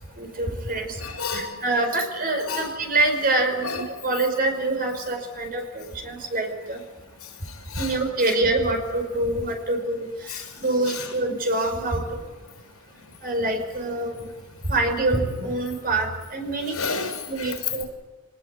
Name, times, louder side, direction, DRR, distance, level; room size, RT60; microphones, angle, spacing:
voice 1, 0.2-1.0 1.3-6.8 7.8-12.2 13.2-14.3 14.7-17.0 17.3-17.8, right 2 dB, 45° right, 4 dB, 5.3 m, -25 dB
voice 2, 1.0-1.6 2.4-2.7 3.6-3.9 7.2-7.9 10.3-10.5 10.9-11.1 16.7-17.7, left 5 dB, 80° left, 4 dB, 6.3 m, -31 dB
24.5 x 20.5 x 8.5 m, 1.2 s
head